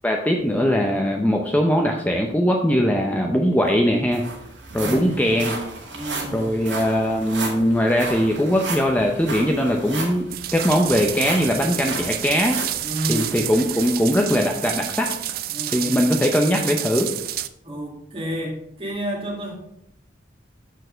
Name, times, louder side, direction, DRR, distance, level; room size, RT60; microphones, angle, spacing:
voice 1, 0.0-4.2 4.7-5.5 6.3-12.6 13.1-15.1 15.7-17.1, equal, 10° left, 1 dB, 0.6 m, -20 dB
sound 1, 3.3-3.4 3.7-14.5 15.0-15.2 15.7-15.8, right 3 dB, 85° right, 2.1 m, -34 dB
voice 2, 4.8-5.4 5.9-6.5 12.8-13.4 15.5-16.0 17.6-19.5, right 1 dB, 30° right, -1 dB, 2.2 m, -30 dB
sound 2, 10.3-17.5, right 13 dB, 55° right, 0.4 m, -30 dB
6.7 x 6.4 x 5.1 m, 0.78 s
head